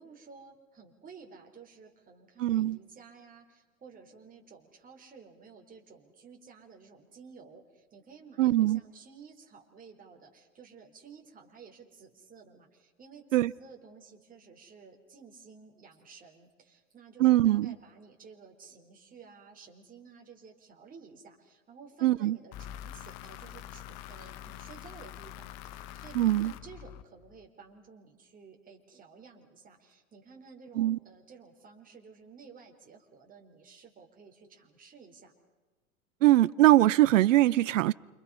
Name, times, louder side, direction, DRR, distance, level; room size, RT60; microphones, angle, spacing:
voice 1, 0.0-35.3, right 5 dB, 20° right, 2 dB, 4.0 m, -53 dB
voice 2, 2.4-2.8 8.4-8.8 13.3-13.5 17.2-17.7 22.0-22.4 26.1-26.5 30.7-31.0 36.2-37.9, right 15 dB, 65° right, 21 dB, 0.8 m, -22 dB
sound 1, 22.5-27.5, left 11 dB, 40° left, 1.1 m, -45 dB
29.0 x 25.5 x 5.6 m, 1.2 s
hypercardioid pair, 105°, 41 cm